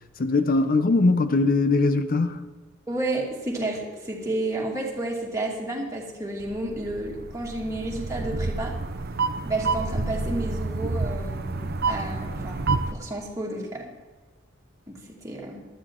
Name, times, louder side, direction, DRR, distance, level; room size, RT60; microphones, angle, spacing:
voice 1, 0.2-2.4, left 3 dB, 45° left, 0.6 m, -21 dB
voice 2, 2.9-8.7 9.4-13.9 14.9-15.6, right 2 dB, 15° right, 2.3 m, -31 dB
sound 1, 6.4-12.9, right 3 dB, 50° right, 0.6 m, -29 dB
14.5 x 12.5 x 3.7 m
head